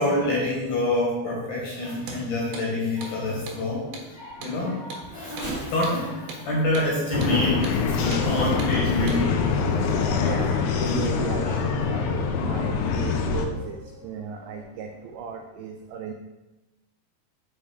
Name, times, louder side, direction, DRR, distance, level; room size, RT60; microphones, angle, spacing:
voice 1, 0.0-9.4, left 1 dB, 55° left, -4 dB, 2.8 m, -27 dB
Race car auto racing / Accelerating revving vroom, 1.5-9.1 9.7-9.8 10.4-15.2, equal, 15° left, 1.9 m, -44 dB
Hammer, 2.0-2.2 2.5-2.7 3.0-3.2 3.5-3.6 3.9-4.1 4.4-4.6 4.9-5.1 5.4-5.5 5.8-6.0 6.3-6.4 6.7-6.9 7.2-7.4 7.6-7.8 8.1-8.3 8.6-8.7 9.1-9.2, right 4 dB, 70° right, 2.9 m, -38 dB
sound 1, 7.1-13.5, left 5 dB, 90° left, 2.1 m, -24 dB
voice 2, 10.2-16.1, right 7 dB, 90° right, 3 dB, 2.1 m, -36 dB
6.2 x 5.4 x 5.0 m, 1.0 s
omnidirectional pair, 4.9 m